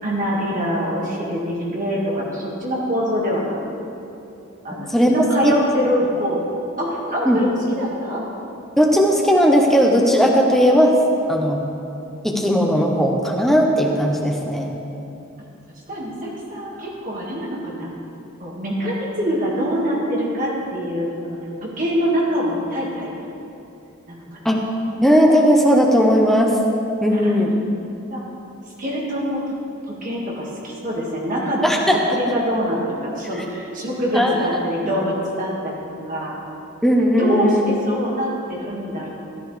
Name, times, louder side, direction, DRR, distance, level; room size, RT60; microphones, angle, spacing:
voice 1, 0.0-3.8 4.6-6.4 6.8-8.3 15.9-17.9 18.4-23.1 24.1-24.4 27.1-27.5 28.1-28.2 28.8-29.4 30.0-35.8 36.1-36.4 37.2-39.1, equal, 40° right, -4 dB, 1.9 m, -24 dB
voice 2, 8.8-10.9 11.3-11.6 12.2-14.7 24.4-24.6 25.0-26.5 27.0-27.5 31.6-31.9 34.1-34.5 36.8-37.6, equal, ahead, -1 dB, 0.9 m, -16 dB
13.5 x 12.0 x 3.3 m, 2.8 s
head